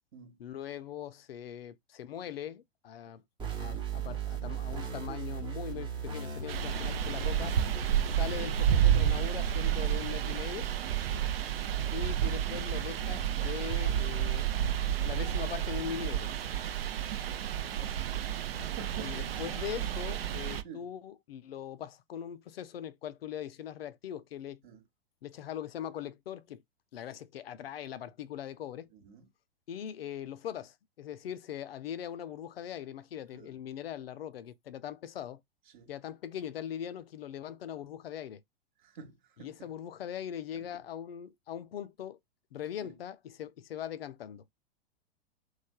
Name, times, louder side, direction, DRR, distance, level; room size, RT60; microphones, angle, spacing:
voice 1, 0.4-3.2 3.6-7.6 8.0-10.7 11.9-14.5 15.0-16.3 19.0-24.6 25.2-26.6 26.9-28.9 29.7-35.4 35.9-38.4 39.4-42.2 42.5-44.4, left 10 dB, 70° left, 0.5 m, -41 dB
sound 1, 3.4-8.7, right 4 dB, 15° right, 0.8 m, -37 dB
sound 2, 6.5-20.6, right 10 dB, 70° right, 0.5 m, -30 dB
voice 2, 17.8-18.3 18.6-19.2 20.6-20.9 24.6-24.8 28.9-29.2 33.3-33.5 35.7-35.9 38.8-39.5 40.5-40.6 42.8-42.9, right 6 dB, 50° right, 0.9 m, -49 dB
3.1 x 2.1 x 2.2 m
figure-of-eight pair, 100°, 31 cm